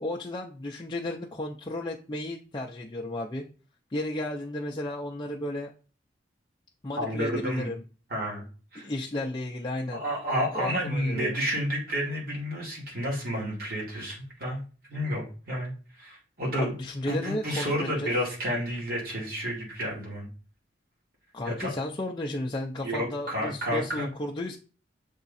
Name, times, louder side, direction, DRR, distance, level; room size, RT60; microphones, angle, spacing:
voice 1, 0.0-3.4 3.9-5.7 6.8-7.8 8.8-10.0 10.5-11.4 16.5-18.1 21.3-24.6, left 1 dB, 25° left, -1 dB, 0.5 m, -33 dB
voice 2, 7.0-7.7 8.1-8.5 8.7-8.9 9.9-14.6 14.9-16.8 17.1-20.3 21.4-21.7 22.8-24.1, equal, 55° right, -3 dB, 2.7 m, -30 dB
6.8 x 3.6 x 4.1 m, 0.37 s
head